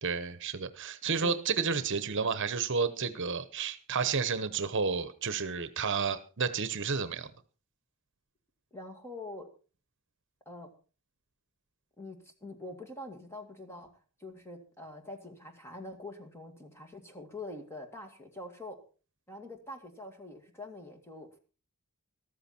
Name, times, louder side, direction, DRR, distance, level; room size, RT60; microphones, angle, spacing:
voice 1, 0.0-7.3, right 5 dB, 55° right, 13 dB, 1.0 m, -31 dB
voice 2, 8.7-9.5 10.5-10.7 12.0-13.9 14.2-18.8 19.3-21.4, left 2 dB, 10° left, 4 dB, 2.2 m, -45 dB
14.0 x 13.5 x 4.4 m, 0.36 s
head